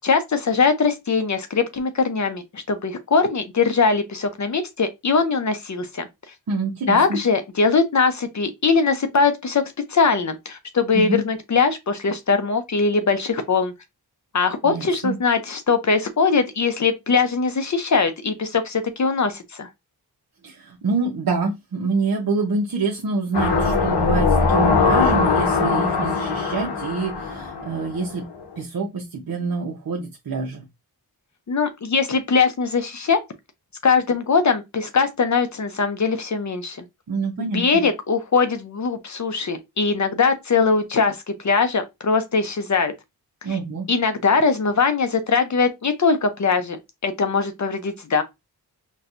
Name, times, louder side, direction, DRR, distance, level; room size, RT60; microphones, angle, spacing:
voice 1, 0.0-6.0 6.9-9.6 9.9-13.7 14.3-19.7 31.5-33.2 33.8-36.8 37.5-42.9 43.9-48.2, left 4 dB, 45° left, 0.6 m, -21 dB
voice 2, 6.5-7.2 10.9-11.2 14.6-15.2 20.4-28.2 28.6-30.6 37.1-37.8 43.4-43.9, right 3 dB, 60° right, 0.7 m, -26 dB
sound 1, 23.3-28.2 28.6-28.7, left 4 dB, 80° left, 0.9 m, -21 dB
4.2 x 2.2 x 2.5 m
wide cardioid pair, 75°, 40 cm